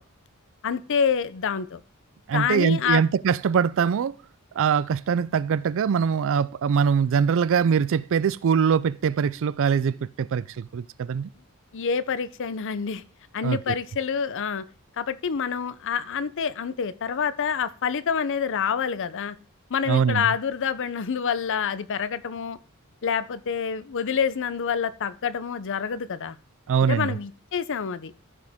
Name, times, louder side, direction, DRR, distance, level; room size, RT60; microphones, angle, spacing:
voice 1, 0.6-1.8 2.3-3.0 11.7-13.0 13.3-14.6 15.0-19.4 19.7-22.6 23.0-26.4 26.9-28.1, left 6 dB, 60° left, 0.6 m, -27 dB
voice 2, 2.3-4.1 4.6-11.3 13.4-13.7 19.9-20.3 26.7-27.2, right 6 dB, 60° right, 0.4 m, -23 dB
14.5 x 5.0 x 3.6 m
head